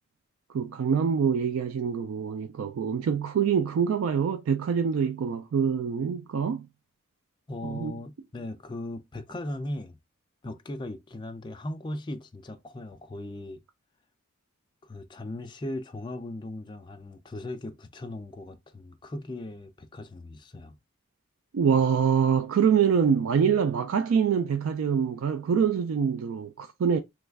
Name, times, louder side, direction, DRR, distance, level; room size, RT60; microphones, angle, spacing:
voice 1, 0.5-6.7 7.6-7.9 21.5-27.0, right 7 dB, 75° right, 0.3 m, -25 dB
voice 2, 7.5-10.0 10.4-13.6 14.8-20.8, left 1 dB, 20° left, 0.4 m, -38 dB
3.1 x 2.3 x 3.4 m
head